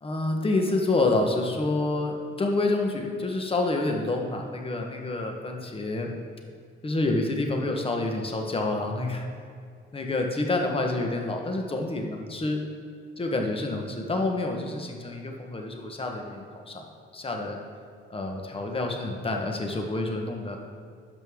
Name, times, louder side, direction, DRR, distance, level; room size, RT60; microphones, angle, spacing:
voice 1, 0.0-6.1 6.8-9.2 9.9-12.6 13.2-16.9 17.1-17.6 18.1-20.6, left 2 dB, 30° left, 2 dB, 1.2 m, -28 dB
12.5 x 5.2 x 3.7 m, 2.2 s
cardioid pair, 90°, 20 cm